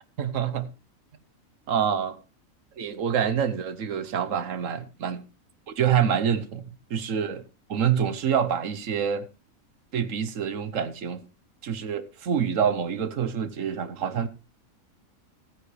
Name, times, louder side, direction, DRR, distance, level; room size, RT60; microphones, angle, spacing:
voice 1, 0.2-0.7 1.7-2.2 2.8-5.2 5.7-7.4 7.7-9.3 9.9-11.2 11.6-14.3, right 8 dB, 70° right, 1.3 m, -26 dB
15.0 x 9.3 x 3.2 m
omnidirectional pair, 1.4 m